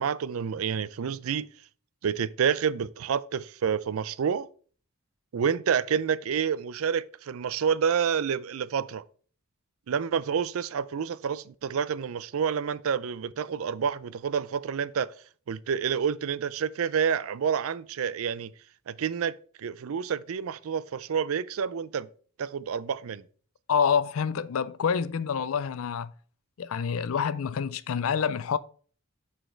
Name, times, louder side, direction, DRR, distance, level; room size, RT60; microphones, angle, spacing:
voice 1, 0.0-1.5 2.0-4.5 5.3-9.0 9.9-15.1 15.5-18.5 18.9-22.1 22.4-23.2, right 7 dB, 75° right, 0.4 m, -28 dB
voice 2, 23.7-26.1 26.6-28.6, left 6 dB, 75° left, 0.4 m, -27 dB
6.3 x 5.1 x 4.4 m
head